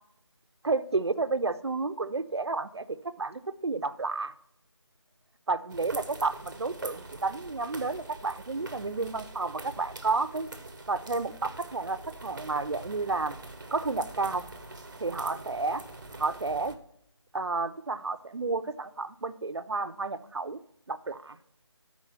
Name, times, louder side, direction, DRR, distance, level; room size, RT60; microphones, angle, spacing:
voice 1, 0.6-4.3 5.5-10.5 10.9-13.4 13.7-14.4 15.0-15.8 16.2-16.8 17.3-20.6 20.9-21.4, right 3 dB, 65° right, 11 dB, 0.7 m, -31 dB
sound 1, 5.7-16.8, right 2 dB, 45° right, 1.0 m, -44 dB
9.7 x 4.4 x 5.7 m, 0.75 s
figure-of-eight pair, 175°, 15 cm